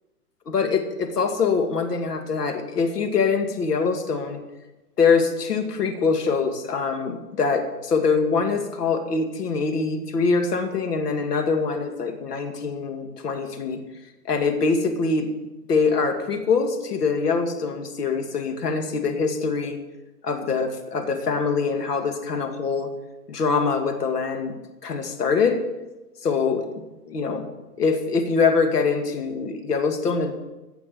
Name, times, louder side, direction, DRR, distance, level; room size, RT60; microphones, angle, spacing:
voice 1, 0.5-4.4 5.0-13.8 14.3-15.3 15.7-19.8 20.2-22.9 23.3-24.5 24.8-25.6 26.2-27.5 27.8-30.3, left 5 dB, 75° left, 5 dB, 2.5 m, -24 dB
16.5 x 6.5 x 7.1 m, 1.1 s
hypercardioid pair, 150°, 47 cm